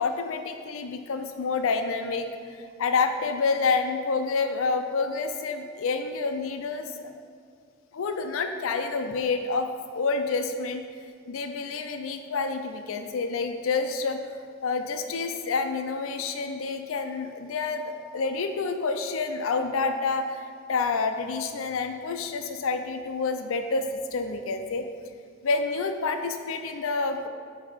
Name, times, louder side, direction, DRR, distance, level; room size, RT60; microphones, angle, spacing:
voice 1, 0.0-7.1 7.9-9.7 9.9-10.8 11.3-14.4 14.6-23.8 24.1-24.9 25.4-27.3, left 4 dB, 80° left, 7 dB, 0.4 m, -28 dB
7.3 x 4.6 x 5.1 m, 2.2 s
head